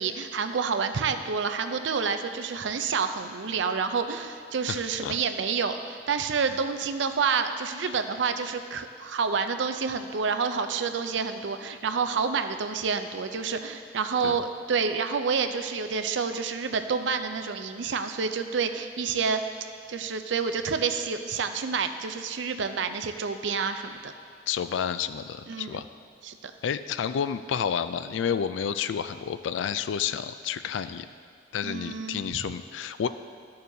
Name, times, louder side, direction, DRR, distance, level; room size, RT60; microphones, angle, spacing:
voice 1, 0.0-19.4 19.9-24.1 25.5-25.8 26.2-26.5 31.6-32.4, right 5 dB, 70° right, 8 dB, 0.5 m, -28 dB
voice 2, 4.7-5.2 14.2-14.4 24.5-25.9 26.6-31.1 31.5-33.1, left 8 dB, 80° left, 12 dB, 0.3 m, -30 dB
12.5 x 6.7 x 2.7 m, 2.2 s
head